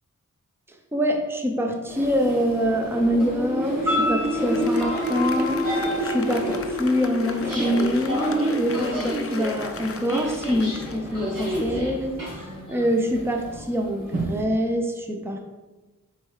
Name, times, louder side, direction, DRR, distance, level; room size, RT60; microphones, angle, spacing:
voice 1, 0.9-12.1 12.7-15.4, equal, 5° right, 2 dB, 0.7 m, -25 dB
sound 1, 1.9-14.4, equal, 85° right, 1.9 m, -28 dB
Applause, 4.2-11.9, left 5 dB, 45° left, 0.5 m, -39 dB
5.1 x 4.5 x 4.8 m, 1.2 s
wide cardioid pair, 110°, 32 cm